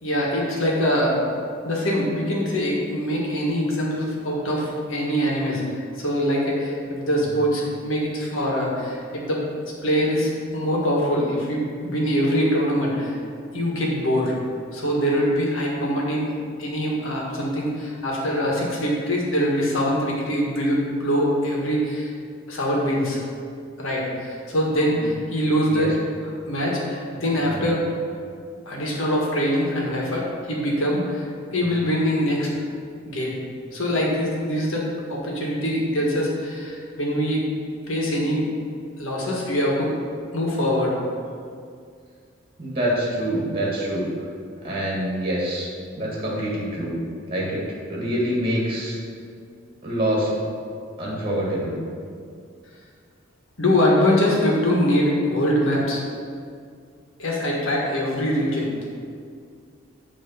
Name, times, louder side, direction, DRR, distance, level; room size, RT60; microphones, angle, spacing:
voice 1, 0.0-1.2 1.6-13.1 13.5-14.4 14.7-22.1 22.5-23.2 23.8-27.9 28.6-31.2 31.5-32.5 33.1-33.4 33.7-37.5 37.9-38.5 39.0-39.9 40.3-41.0 53.6-56.0 57.2-58.7, equal, 75° left, -3 dB, 1.4 m, -23 dB
voice 2, 42.6-44.1 44.6-45.7 45.9-47.0 47.3-47.6 47.9-49.0 49.8-50.3 51.0-51.8, equal, 25° right, -5 dB, 1.5 m, -25 dB
8.2 x 3.1 x 5.5 m, 2.3 s
head